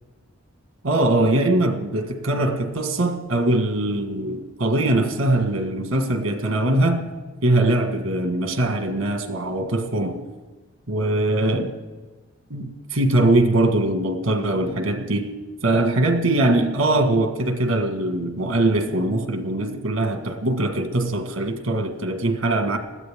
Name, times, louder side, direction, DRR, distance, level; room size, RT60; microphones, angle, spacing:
voice 1, 0.8-7.0 7.4-10.2 10.9-11.7 12.5-15.3 15.6-22.8, right 2 dB, 90° right, 6 dB, 1.7 m, -22 dB
20.5 x 14.0 x 3.7 m, 1.2 s
head